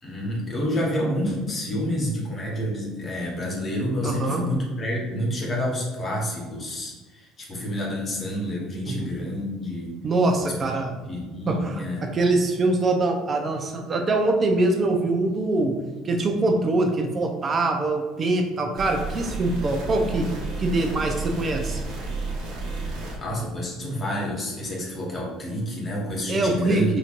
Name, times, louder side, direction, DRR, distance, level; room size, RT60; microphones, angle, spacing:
voice 1, 0.0-9.9 10.4-10.7 11.1-12.1 22.8-27.0, equal, 35° left, -3 dB, 1.2 m, -29 dB
voice 2, 4.0-4.4 8.9-9.1 10.0-10.9 11.5-15.7 16.0-20.3 20.6-21.8 26.3-27.0, right 2 dB, 40° right, 3 dB, 0.7 m, -23 dB
sound 1, 18.8-23.2, right 3 dB, 65° right, 0.9 m, -31 dB
4.3 x 2.9 x 2.6 m, 1.3 s
supercardioid pair, 75°, 0 cm